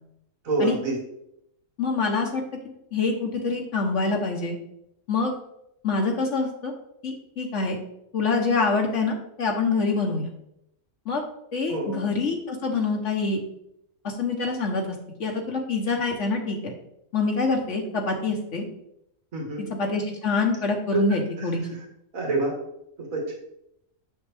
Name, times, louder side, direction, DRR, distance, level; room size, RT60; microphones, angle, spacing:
voice 1, 0.4-1.0 11.7-12.0 19.3-19.6 20.9-21.0 21.4-21.5 21.7-21.9 22.1-22.5 23.0-23.3, right 3 dB, 90° right, -1 dB, 2.2 m, -27 dB
voice 2, 1.8-4.6 5.1-5.3 5.8-6.7 7.0-7.8 8.1-10.3 11.1-11.2 11.5-13.4 14.0-16.7 17.1-18.6 19.8-21.6, left 4 dB, 65° left, 1 dB, 1.3 m, -26 dB
8.0 x 6.4 x 3.4 m, 0.79 s
omnidirectional pair, 1.4 m